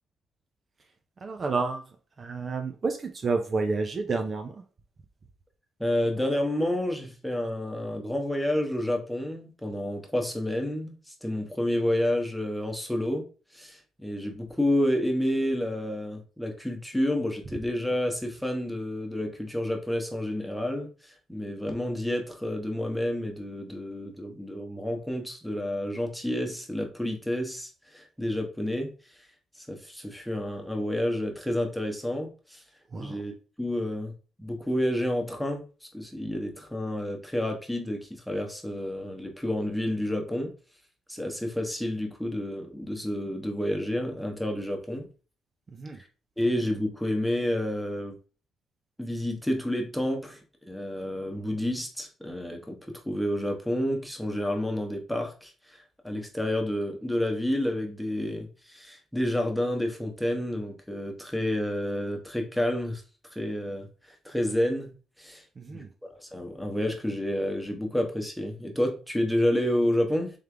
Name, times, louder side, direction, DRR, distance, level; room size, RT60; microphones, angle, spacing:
voice 1, 1.2-4.6 32.9-33.2 45.7-46.0 65.6-65.9, right 4 dB, 40° right, 5 dB, 0.5 m, -30 dB
voice 2, 5.8-10.9 11.2-13.2 13.5-28.9 29.6-32.6 33.0-33.3 33.6-34.1 34.4-40.5 41.1-45.1 46.4-48.2 49.0-50.4 50.7-52.8 53.0-63.0 63.3-64.9 65.2-65.4 65.7-70.3, left 1 dB, ahead, 2 dB, 1.0 m, -29 dB
3.6 x 3.3 x 3.4 m, 0.35 s
cardioid pair, 90°, 0 cm